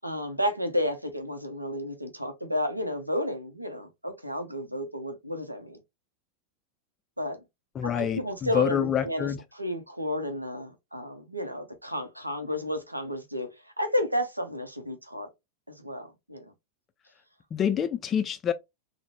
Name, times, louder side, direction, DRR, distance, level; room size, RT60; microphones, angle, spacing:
voice 1, 0.0-5.8 7.2-7.4 7.8-15.3 15.7-16.4, left 1 dB, 85° right, 0.6 m, -32 dB
voice 2, 7.8-9.4 17.5-18.5, left 8 dB, 25° left, 0.3 m, -27 dB
3.7 x 2.0 x 2.9 m
figure-of-eight pair, 90°, 0 cm